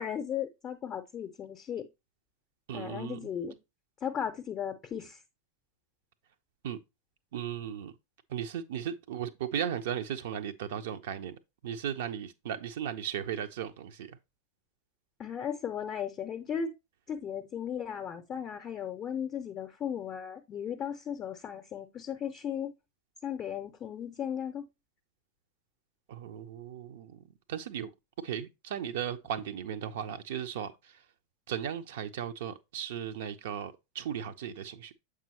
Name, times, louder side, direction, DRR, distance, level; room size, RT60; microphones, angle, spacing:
voice 1, 0.0-1.9 2.7-3.6 4.0-5.2 15.2-16.7 17.1-22.7 23.2-24.6, left 8 dB, 30° left, 0.6 m, -36 dB
voice 2, 2.7-3.2 6.6-6.8 7.3-7.9 8.3-14.2 26.1-27.2 27.5-27.9 28.2-31.0 31.5-34.9, right 9 dB, 55° right, 0.5 m, -36 dB
7.3 x 4.8 x 2.8 m
figure-of-eight pair, 90°, 0 cm